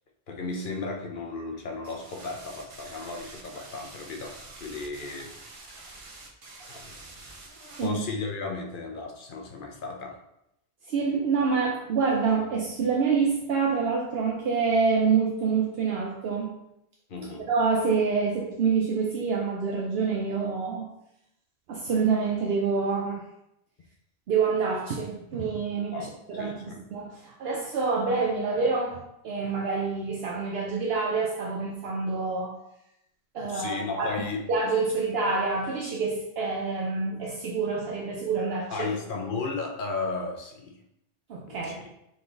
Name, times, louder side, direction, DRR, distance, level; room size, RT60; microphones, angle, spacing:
voice 1, 0.3-5.3 6.7-6.9 7.8-10.2 17.1-17.5 25.7-26.8 33.4-34.4 38.7-40.8 41.5-41.9, left 3 dB, 60° left, 2 dB, 0.8 m, -35 dB
sound 1, 1.8-7.9, right 2 dB, 40° right, 0.6 m, -46 dB
voice 2, 10.9-16.5 17.5-20.9 21.7-23.2 24.3-32.6 33.3-34.1 34.5-38.9 41.3-41.8, right 5 dB, 70° right, -1 dB, 0.8 m, -27 dB
3.9 x 3.8 x 3.3 m, 0.82 s
omnidirectional pair, 1.1 m